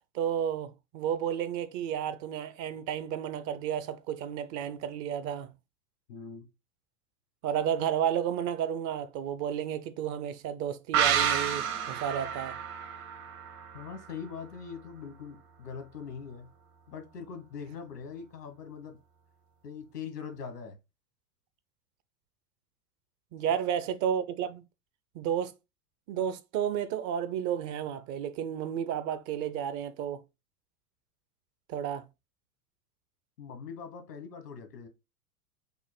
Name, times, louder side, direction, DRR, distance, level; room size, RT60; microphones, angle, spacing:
voice 1, 0.1-5.5 7.4-12.6 23.3-24.6 25.1-25.5 26.1-30.2 31.7-32.1, right 9 dB, 40° right, 0.6 m, -32 dB
voice 2, 6.1-6.5 13.7-16.5 16.9-19.0 19.6-20.8 33.4-34.9, left 6 dB, 85° left, 1.3 m, -42 dB
sound 1, 10.9-14.4 14.7-14.8, right 8 dB, 55° right, 1.2 m, -30 dB
5.5 x 2.1 x 4.3 m
hypercardioid pair, 90°, 46 cm